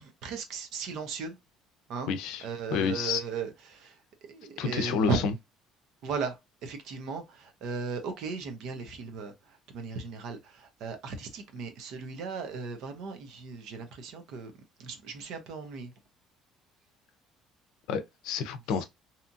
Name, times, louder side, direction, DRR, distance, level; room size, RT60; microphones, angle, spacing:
voice 1, 0.0-1.4 1.9-5.2 6.0-14.5 14.8-15.9, right 4 dB, 55° right, 0.7 m, -36 dB
voice 2, 2.1-2.4 2.7-3.2 4.6-5.2 17.9-18.8, left 6 dB, 70° left, 0.5 m, -29 dB
2.8 x 2.4 x 2.6 m
cardioid pair, 180°, 0 cm